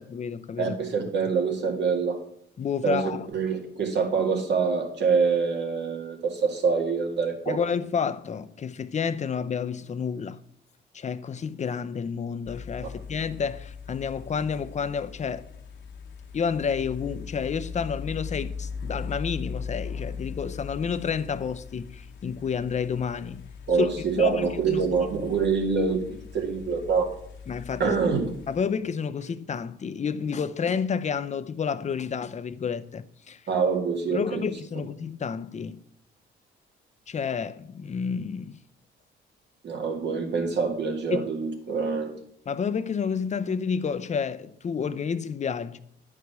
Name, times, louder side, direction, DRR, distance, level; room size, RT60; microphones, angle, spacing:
voice 1, 0.0-0.7 2.6-3.3 7.5-10.4 10.9-15.4 16.3-23.4 23.8-23.9 24.2-24.8 27.5-28.0 28.5-33.4 34.1-35.8 37.1-38.6 41.1-41.2 42.5-45.8, left 6 dB, 35° left, 0.6 m, -30 dB
voice 2, 0.6-2.2 2.8-3.0 3.3-7.6 23.7-27.1 27.8-28.3 33.5-34.4 39.6-42.1, right 5 dB, 60° right, 2.1 m, -25 dB
sound 1, 12.4-28.6, left 5 dB, 65° left, 1.1 m, -40 dB
9.9 x 4.8 x 6.7 m
cardioid pair, 90°, 20 cm